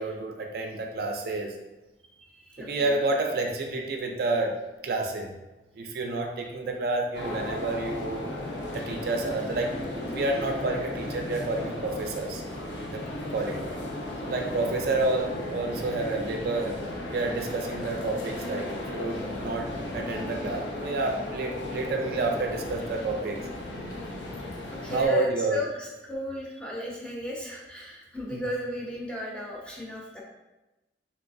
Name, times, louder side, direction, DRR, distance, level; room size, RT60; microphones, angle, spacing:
voice 1, 0.0-1.5 2.6-4.5 4.8-5.3 5.8-8.3 8.7-12.4 12.8-13.0 13.3-13.6 14.2-16.8 17.1-23.4 24.9-25.6 28.3-28.4, right 3 dB, 55° right, 3 dB, 0.3 m, -29 dB
voice 2, 2.2-3.0 24.7-30.2, left 2 dB, 5° left, -3 dB, 0.5 m, -34 dB
sound 1, 7.1-25.1, left 1 dB, 80° left, 0.7 m, -35 dB
3.2 x 2.9 x 2.5 m, 1.0 s
head